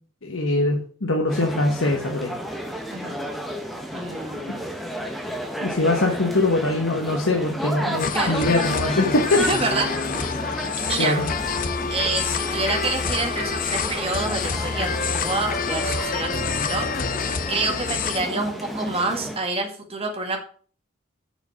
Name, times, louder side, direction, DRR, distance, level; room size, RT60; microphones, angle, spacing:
voice 1, 0.2-2.3 5.6-9.4 11.0-11.3, left 2 dB, 65° left, 1 dB, 1.2 m, -22 dB
sound 1, 1.3-19.4, equal, ahead, 1.2 m, -32 dB
voice 2, 2.9-3.2 3.9-4.7 8.1-8.5 9.4-9.9 10.8-11.2 11.9-17.1 17.5-20.4, right 3 dB, 30° right, 3 dB, 1.7 m, -28 dB
sound 2, 8.0-18.2, left 5 dB, 40° left, 0.7 m, -27 dB
6.8 x 6.5 x 6.4 m, 0.43 s
head